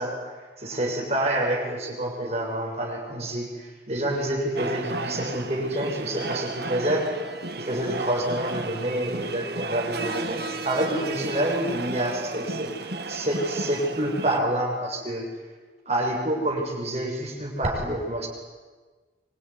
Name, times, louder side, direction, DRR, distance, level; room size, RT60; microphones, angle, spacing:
voice 1, 0.0-7.1 7.6-15.3 15.8-18.3, right 1 dB, 35° right, 0 dB, 6.9 m, -28 dB
sound 1, 4.6-14.4, right 3 dB, 65° right, 1.6 m, -33 dB
24.5 x 24.5 x 10.0 m, 1.4 s
head